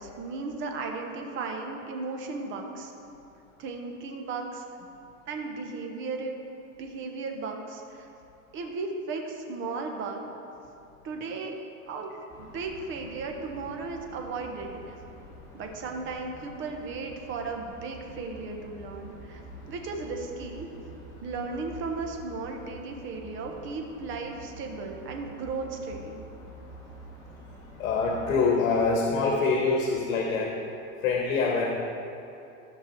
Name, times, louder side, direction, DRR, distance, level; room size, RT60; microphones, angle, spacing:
voice 1, 0.0-2.9 3.6-4.6 5.3-6.4 6.8-8.1 8.5-10.2 11.0-11.6 11.9-12.1 12.4-14.9 15.5-19.4 19.7-20.7 21.2-26.2, right 4 dB, 30° right, 2 dB, 1.0 m, -35 dB
sound 1, 12.3-28.8, right 1 dB, 10° left, 1.8 m, -47 dB
voice 2, 27.8-30.6 31.0-31.7, left 4 dB, 80° left, 0 dB, 1.3 m, -25 dB
13.5 x 6.0 x 4.5 m, 2.8 s
supercardioid pair, 155°, 40 cm